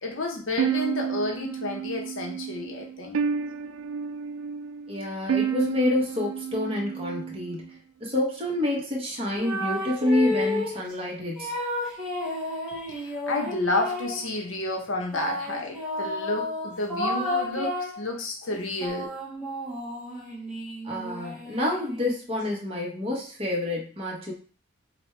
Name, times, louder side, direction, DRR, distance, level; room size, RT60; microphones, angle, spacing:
voice 1, 0.0-3.2 12.7-19.1, left 2 dB, 80° left, 2 dB, 0.8 m, -31 dB
sound 1, 0.6-7.7, right 7 dB, 85° right, 0.3 m, -30 dB
voice 2, 4.9-11.6 20.8-24.3, left 1 dB, 30° right, -2 dB, 1.1 m, -28 dB
sound 2, 9.4-10.8 11.4-14.3 15.1-18.0 18.5-22.2, left 1 dB, 5° right, 1.0 m, -32 dB
5.1 x 2.3 x 3.2 m, 0.39 s
head